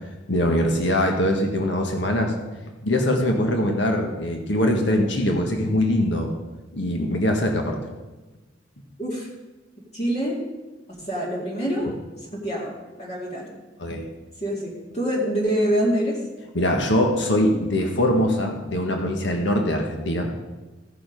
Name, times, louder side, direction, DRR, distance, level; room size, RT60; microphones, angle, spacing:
voice 1, 0.3-2.3 2.8-6.3 6.7-7.8 13.8-14.1 16.5-20.3, left 1 dB, 65° left, 2 dB, 1.6 m, -22 dB
voice 2, 9.9-10.4 10.9-11.9 12.2-13.6 14.4-16.2, equal, 35° left, -5 dB, 2.1 m, -26 dB
15.0 x 7.1 x 5.2 m, 1.2 s
head